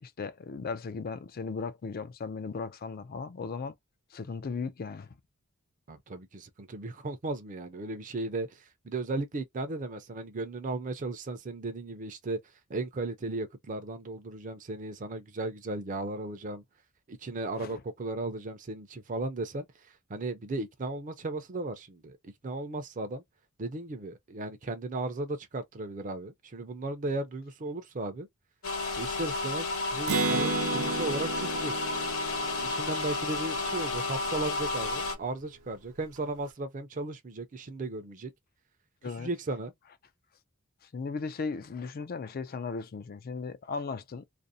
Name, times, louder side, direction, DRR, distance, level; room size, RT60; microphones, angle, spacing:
voice 1, 0.0-3.7 4.1-5.2 17.6-17.8 39.0-39.3 40.9-44.3, left 4 dB, 45° left, 0.4 m, -36 dB
voice 2, 5.9-12.4 12.7-16.6 17.1-19.7 20.1-23.2 23.6-28.3 29.0-31.7 32.6-38.3 39.2-39.7, right 2 dB, 40° right, 0.5 m, -36 dB
sound 1, 28.6-35.1, left 3 dB, 85° left, 1.1 m, -32 dB
Acoustic guitar, 30.1-33.7, right 3 dB, 85° right, 0.7 m, -32 dB
2.5 x 2.0 x 2.6 m
head